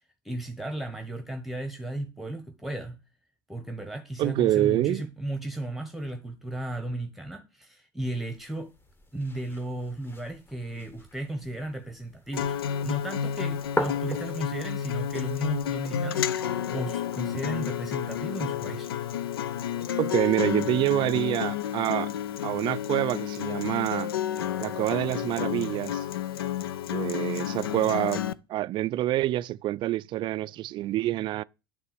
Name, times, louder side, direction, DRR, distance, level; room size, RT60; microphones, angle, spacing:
voice 1, 0.2-3.0 3.5-8.7 9.1-18.9, right 1 dB, ahead, 1.1 m, -35 dB
voice 2, 4.2-5.1 20.0-22.1 22.4-24.1 24.6-26.1 26.9-31.4, right 15 dB, 40° right, 0.4 m, -27 dB
sound 1, 8.0-15.8, left 1 dB, 15° left, 1.3 m, -39 dB
Acoustic guitar, 12.3-28.3, left 9 dB, 80° left, 0.5 m, -31 dB
9.5 x 3.6 x 6.8 m
hypercardioid pair, 80°, 12 cm